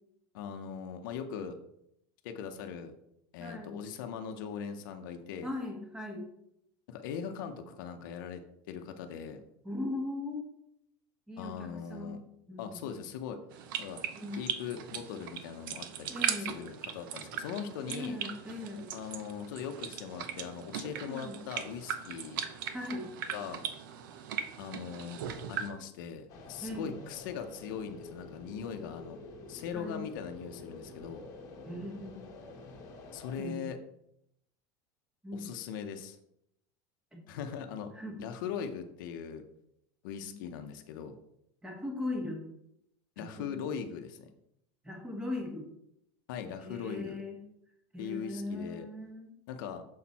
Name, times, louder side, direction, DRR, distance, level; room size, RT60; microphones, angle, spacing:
voice 1, 0.3-1.6 2.2-2.9 3.3-5.5 6.9-8.4 8.7-9.4 11.4-12.2 12.6-13.4 13.8-14.0 14.3-16.1 16.4-18.2 18.9-22.4 23.3-23.6 24.6-25.2 25.5-29.2 29.5-31.2 33.1-33.8 35.3-36.2 37.3-37.9 38.2-39.5 40.0-41.2 43.2-44.3 46.3-47.2 48.0-48.9 49.5-49.8, left 7 dB, 75° left, 6 dB, 0.8 m, -40 dB
voice 2, 3.4-3.8 5.4-6.3 9.6-10.5 11.3-12.2 12.5-12.8 14.2-14.5 16.1-16.6 17.9-18.9 21.1-21.4 22.7-23.1 26.6-26.9 29.7-30.0 31.7-32.4 33.4-33.7 35.2-35.5 37.1-37.2 37.9-38.2 40.2-40.3 41.6-42.5 43.2-43.5 44.8-45.7 46.6-47.4 47.9-49.3, left 2 dB, 5° right, 1 dB, 1.2 m, -39 dB
sound 1, 13.5-25.7, right 9 dB, 80° right, 0.7 m, -39 dB
sound 2, 26.3-33.4, left 3 dB, 30° left, 1.2 m, -48 dB
6.6 x 4.3 x 4.2 m, 0.77 s
supercardioid pair, 170°, 11 cm